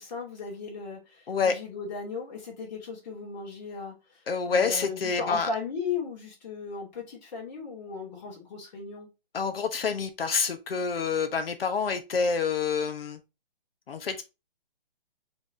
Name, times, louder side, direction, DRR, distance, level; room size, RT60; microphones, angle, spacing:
voice 1, 0.0-3.9 4.5-9.1, left 5 dB, 45° left, 2.5 m, -36 dB
voice 2, 4.3-5.5 9.3-13.2 13.9-14.2, left 5 dB, 70° left, 1.1 m, -27 dB
5.2 x 3.5 x 2.8 m
hypercardioid pair, 155°, 30 cm